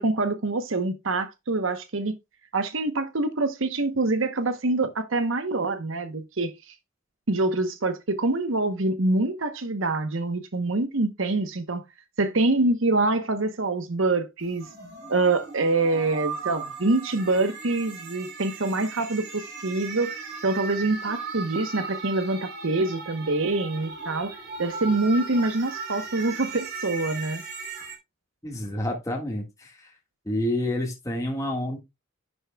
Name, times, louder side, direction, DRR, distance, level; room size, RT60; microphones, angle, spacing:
voice 1, 0.0-2.1 2.5-6.5 7.3-11.8 12.2-14.7 15.1-27.4, right 2 dB, 70° right, 1.0 m, -25 dB
sound 1, 14.4-28.0, right 5 dB, 55° right, 3.6 m, -37 dB
voice 2, 28.4-29.9 30.2-31.8, left 1 dB, 15° left, 1.7 m, -29 dB
11.0 x 7.9 x 2.3 m
head